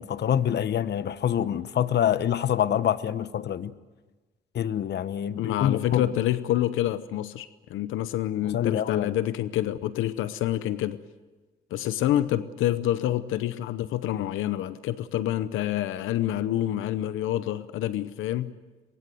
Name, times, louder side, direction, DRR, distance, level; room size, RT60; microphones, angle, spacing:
voice 1, 0.0-3.7 4.5-6.1 8.4-9.2, left 10 dB, 60° left, 1.0 m, -26 dB
voice 2, 5.4-11.0 11.7-18.5, left 13 dB, 90° left, 0.8 m, -27 dB
23.5 x 22.5 x 7.8 m
cardioid pair, 90°, 20 cm